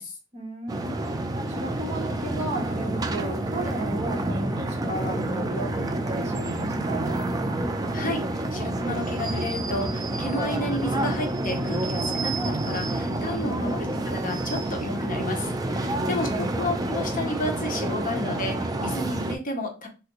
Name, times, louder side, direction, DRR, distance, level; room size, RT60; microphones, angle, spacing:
voice 1, 0.3-7.2 13.2-13.7 15.7-16.4, right 2 dB, 35° right, 1.0 m, -35 dB
sound 1, 0.7-19.4, right 1 dB, 20° right, 0.3 m, -28 dB
voice 2, 7.9-8.3 8.5-19.9, left 1 dB, 40° left, 0.6 m, -32 dB
3.3 x 2.4 x 2.9 m
head